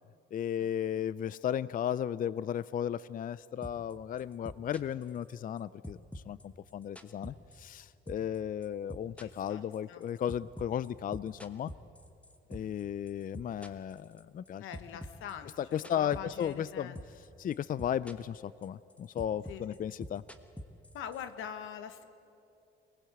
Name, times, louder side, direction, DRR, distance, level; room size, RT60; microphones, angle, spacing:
voice 1, 0.3-11.7 12.5-14.7 15.6-16.9 17.4-20.2, left 9 dB, 45° left, 18 dB, 0.4 m, -35 dB
sound 1, 3.6-3.9 4.2-5.6 5.8-8.4 8.6-12.8 13.1-14.5 14.7-16.7 17.0-17.3 17.5-18.4 18.6-21.2, equal, 5° left, 1.4 m, -45 dB
voice 2, 9.2-9.6 9.9-10.0 14.6-17.0 19.5-19.9 20.9-22.0, left 9 dB, 90° left, 10 dB, 1.3 m, -44 dB
23.5 x 19.5 x 8.0 m, 2.7 s
cardioid pair, 90°, 20 cm